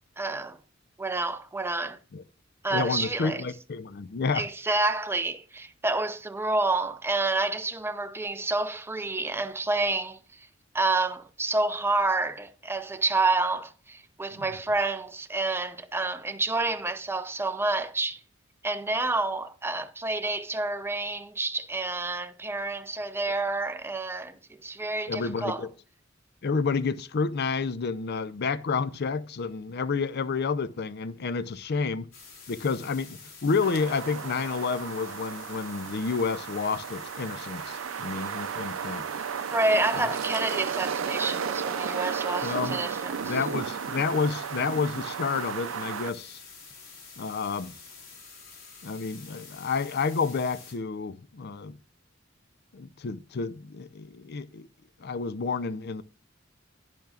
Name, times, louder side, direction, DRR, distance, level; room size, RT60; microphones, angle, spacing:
voice 1, 0.2-0.6 1.0-2.0 2.6-3.4 4.3-10.2 10.7-18.2 18.6-25.6 39.5-43.4, right 2 dB, 10° right, 0.5 m, -29 dB
voice 2, 2.7-4.5 14.3-14.4 25.1-25.7 26.4-32.1 32.5-39.0 40.0-40.1 42.4-42.8 43.2-46.4 47.2-47.7 48.8-51.8 52.7-54.7 55.0-56.0, left 4 dB, 55° left, 0.5 m, -30 dB
sound 1, 32.1-50.7, left 4 dB, 80° left, 4.2 m, -48 dB
sound 2, 33.6-46.1, right 7 dB, 90° right, 0.5 m, -34 dB
10.5 x 10.5 x 2.4 m
head